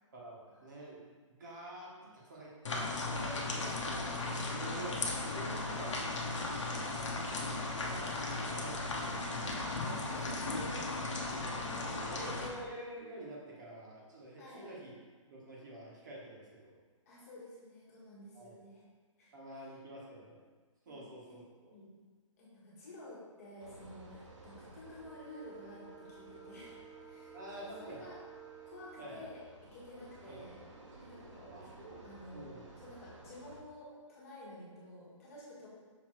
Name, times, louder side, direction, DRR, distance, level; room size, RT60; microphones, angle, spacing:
voice 1, 0.1-4.1 4.5-5.0 5.3-6.1 7.8-9.0 10.7-10.8 11.7-14.9 15.3-16.8 18.3-18.5 19.3-20.4 20.8-21.7 27.3-28.1 29.0-29.3 30.3-30.5 31.5-32.1 32.3-32.7, right 1 dB, 35° right, -4 dB, 1.2 m, -48 dB
sound 1, 2.7-12.5, left 2 dB, 65° left, 1.1 m, -36 dB
voice 2, 3.5-4.3 9.7-11.1 11.6-11.8 12.0-12.4 14.4-14.7 17.0-18.8 19.2-19.3 20.9-21.4 21.7-22.0 22.4-27.4 27.8-28.2 28.6-30.6 31.0-32.4 32.8-35.7, left 1 dB, 30° left, -6 dB, 1.4 m, -52 dB
sound 2, 23.6-33.6, right 4 dB, 65° right, 1.2 m, -53 dB
6.2 x 3.4 x 4.5 m, 1.4 s
hypercardioid pair, 170°, 17 cm